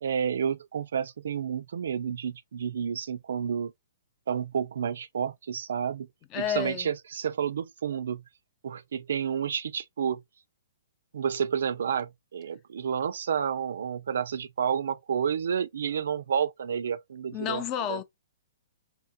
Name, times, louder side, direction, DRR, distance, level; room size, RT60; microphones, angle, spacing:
voice 1, 0.0-3.7 4.3-6.1 6.3-8.2 8.6-10.2 11.1-17.6 17.9-18.0, right 7 dB, 60° right, 0.3 m, -30 dB
voice 2, 6.3-6.9 17.3-18.0, left 9 dB, 30° left, 0.5 m, -30 dB
4.4 x 2.0 x 2.4 m
figure-of-eight pair, 115°, 0 cm